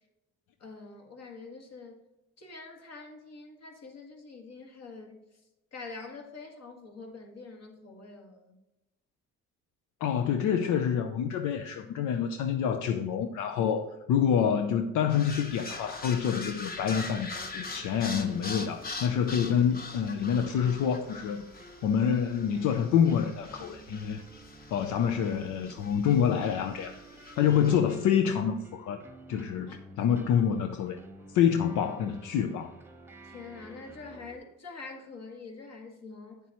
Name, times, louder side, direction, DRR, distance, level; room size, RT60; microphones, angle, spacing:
voice 1, 0.6-2.0 2.4-5.2 5.7-8.6 27.5-27.8 29.7-30.4 33.2-36.4, left 4 dB, 55° left, 1.8 m, -46 dB
voice 2, 10.0-21.4 21.8-24.2 24.7-27.0 27.4-29.0 29.3-31.0 31.3-32.7, left 8 dB, 85° left, 0.6 m, -27 dB
sound 1, 15.1-27.8, left 3 dB, 30° left, 1.0 m, -43 dB
sound 2, 17.4-34.4, right 2 dB, 5° right, 0.9 m, -52 dB
8.7 x 7.3 x 3.0 m
cardioid pair, 90°, 30 cm